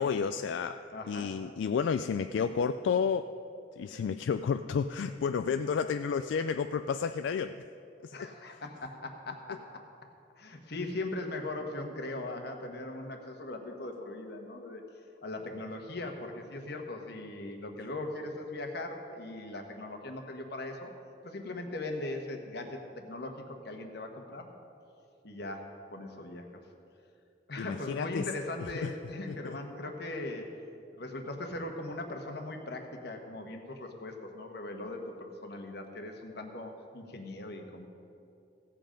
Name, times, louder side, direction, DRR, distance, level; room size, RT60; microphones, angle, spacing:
voice 1, 0.0-3.4 3.8-7.6 8.0-8.3 27.6-28.3 28.6-28.9 29.3-29.6, left 6 dB, 90° left, 9 dB, 0.3 m, -31 dB
voice 2, 0.9-1.3 8.1-9.8 10.4-14.8 15.2-20.9 21.2-24.5 25.2-26.6 27.5-30.5 30.9-37.9, left 2 dB, 65° left, 4 dB, 1.3 m, -39 dB
16.0 x 7.6 x 5.2 m, 2.6 s
head